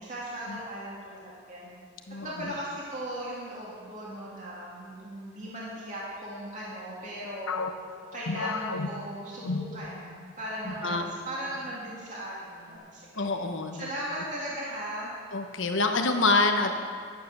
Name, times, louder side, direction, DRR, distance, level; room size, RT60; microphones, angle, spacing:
voice 1, 0.0-1.7 2.2-7.6 8.1-13.3 13.7-15.1, equal, 35° right, -7 dB, 2.6 m, -37 dB
voice 2, 2.1-2.5 10.8-11.0 13.1-13.9 15.3-16.7, left 3 dB, 60° left, 5 dB, 1.1 m, -26 dB
sound 1, 7.5-10.3 10.6-10.9 11.5-12.0, left 3 dB, 90° left, 0.7 m, -34 dB
11.5 x 9.3 x 6.8 m, 2.2 s
head